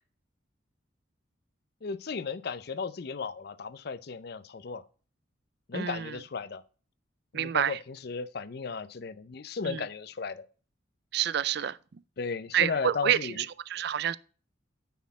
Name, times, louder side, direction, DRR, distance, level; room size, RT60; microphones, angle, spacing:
voice 1, 1.8-4.8 5.7-6.6 7.3-10.4 12.2-13.4, left 5 dB, 55° left, 0.5 m, -35 dB
voice 2, 5.7-6.1 7.3-7.8 9.7-9.8 11.1-11.8 12.5-14.2, right 9 dB, 55° right, 0.4 m, -28 dB
9.2 x 4.3 x 4.1 m
head